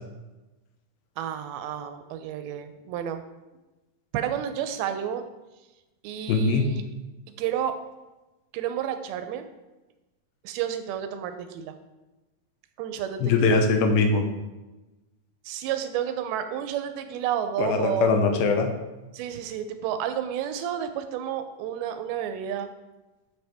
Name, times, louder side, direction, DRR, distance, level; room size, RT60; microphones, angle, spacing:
voice 1, 1.2-3.2 4.1-5.2 6.0-6.8 7.4-7.7 8.5-9.4 10.4-11.7 12.8-13.6 15.5-18.1 19.1-22.7, right 10 dB, 90° right, 8 dB, 2.5 m, -31 dB
voice 2, 6.3-6.7 13.2-14.3 17.6-18.7, left 4 dB, 85° left, 5 dB, 2.6 m, -21 dB
10.5 x 4.8 x 3.5 m, 1.1 s
omnidirectional pair, 4.3 m